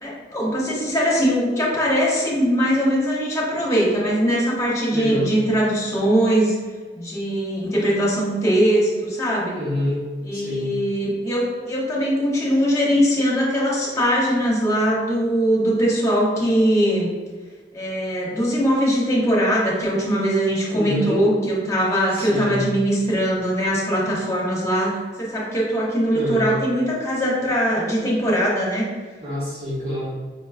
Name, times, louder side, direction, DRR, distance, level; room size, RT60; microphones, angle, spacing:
voice 1, 0.0-6.5 6.9-9.5 10.2-17.1 17.7-28.8, equal, 15° left, -5 dB, 1.0 m, -21 dB
voice 2, 4.9-5.4 9.5-10.0 10.3-10.7 20.7-21.2 22.1-22.7 26.1-26.5 29.2-30.1, left 1 dB, 60° right, -12 dB, 1.4 m, -26 dB
5.3 x 3.1 x 2.3 m, 1.5 s
head